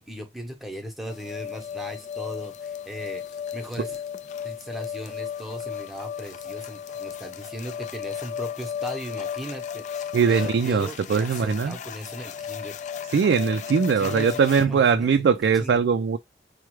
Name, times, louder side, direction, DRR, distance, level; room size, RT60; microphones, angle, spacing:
voice 1, 0.0-4.0 4.4-12.8 14.0-15.2 15.6-15.8, equal, ahead, 0.8 m, -38 dB
sound 1, 1.1-14.7, left 8 dB, 40° left, 0.3 m, -35 dB
voice 2, 10.1-11.8 13.1-16.2, right 6 dB, 75° right, 0.3 m, -21 dB
4.6 x 2.2 x 3.1 m
head